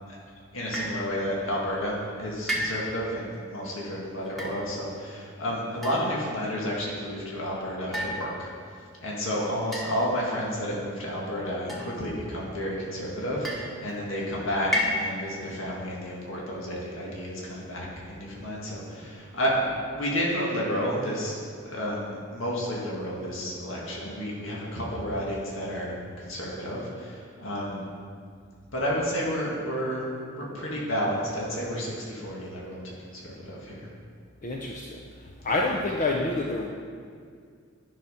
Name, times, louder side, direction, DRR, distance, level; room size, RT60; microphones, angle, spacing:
voice 1, 0.5-8.5 9.0-27.9 28.7-30.1 30.3-33.8 35.5-35.6, equal, 75° left, -4 dB, 1.9 m, -31 dB
sound 1, 0.7-1.1 2.5-3.1 4.3-4.6 5.8-6.4 7.9-8.7 9.7-10.3 11.7-12.3 13.4-14.0 14.7-15.4, equal, ahead, 1.3 m, -32 dB
voice 2, 34.4-35.0 35.4-36.7, left 2 dB, 40° left, 0 dB, 0.6 m, -27 dB
10.5 x 5.8 x 5.6 m, 2.1 s
head